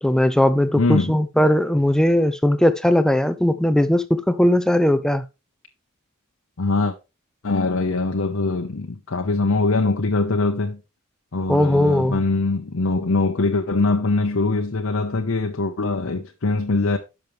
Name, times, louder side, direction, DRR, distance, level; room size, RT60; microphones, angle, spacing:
voice 1, 0.0-5.2 11.5-12.2, left 1 dB, 5° left, 0.5 m, -18 dB
voice 2, 0.8-1.1 6.6-7.0 7.4-10.8 11.3-17.0, left 3 dB, 65° left, 0.8 m, -22 dB
10.5 x 6.2 x 3.2 m
head